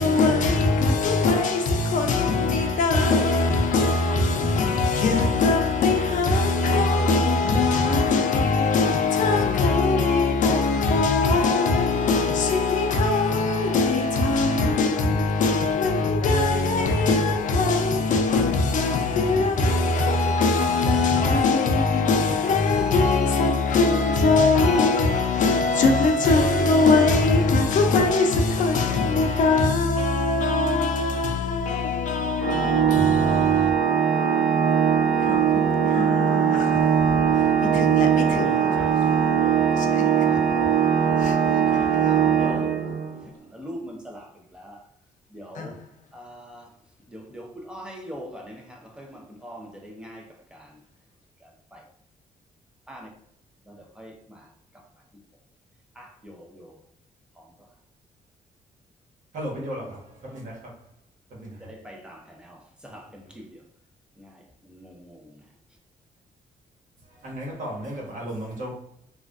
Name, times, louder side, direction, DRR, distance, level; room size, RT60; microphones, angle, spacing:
voice 1, 0.0-33.7 35.2-36.9 37.4-38.8 39.8-40.0 40.3-40.4 41.2-41.6 42.0-42.3 45.5-45.7, left 3 dB, 65° left, 0.5 m, -21 dB
Organ, 32.4-43.2, right 7 dB, 90° right, 0.6 m, -21 dB
voice 2, 37.9-40.8 41.1-41.2 41.7-42.7 43.2-44.8 45.3-45.7 46.1-46.7 47.1-50.8 51.4-51.8 52.9-53.1 53.7-54.4 54.7-54.8 56.0-56.8 57.4-57.5 61.6-63.6 64.2-65.3, equal, 5° right, 0.6 m, -43 dB
voice 3, 59.3-60.6 61.3-61.7 67.2-68.7, equal, 65° right, 1.3 m, -35 dB
3.3 x 2.4 x 2.5 m
cardioid pair, 120°, 14 cm